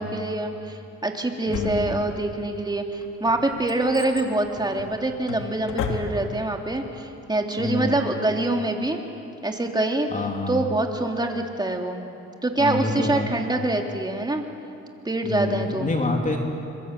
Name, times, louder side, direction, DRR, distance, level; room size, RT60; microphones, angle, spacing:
voice 1, 0.0-9.0 9.4-10.1 10.5-12.1 12.4-14.5 15.0-15.9, right 2 dB, 15° right, 2 dB, 3.1 m, -25 dB
Drawer open or close, 1.5-2.4 3.0-6.5 6.8-6.9, left 5 dB, 90° left, 2.7 m, -33 dB
voice 2, 1.5-1.9 7.6-8.0 10.1-10.6 12.6-13.3 15.2-16.4, left 2 dB, 25° left, 1 dB, 3.7 m, -27 dB
25.5 x 23.0 x 8.4 m, 2.8 s
cardioid pair, 90°, 30 cm